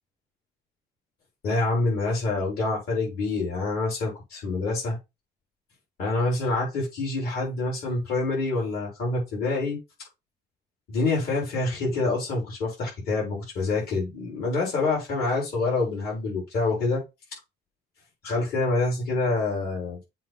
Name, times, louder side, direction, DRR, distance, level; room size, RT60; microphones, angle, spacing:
voice 1, 1.4-5.0 6.0-9.8 10.9-17.0 18.2-20.0, left 3 dB, 65° left, -3 dB, 4.3 m, -26 dB
7.5 x 3.0 x 5.9 m, 0.24 s
cardioid pair, 110°, 17 cm